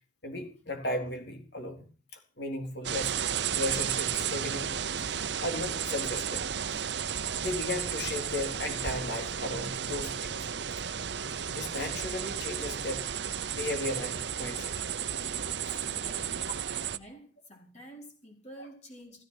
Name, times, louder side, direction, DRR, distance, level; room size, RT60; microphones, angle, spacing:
voice 1, 0.2-1.9 2.1-3.2 3.5-5.1 5.4-6.4 7.4-10.4 10.8-10.9 11.2-13.0 13.5-14.8 15.6-15.9 16.4-16.5, left 2 dB, 55° left, 4.0 m, -36 dB
sound 1, 2.8-17.0, right 8 dB, 60° right, 0.8 m, -33 dB
voice 2, 15.9-16.4 16.9-19.2, right 1 dB, 35° left, 4.7 m, -49 dB
15.0 x 14.5 x 6.0 m
head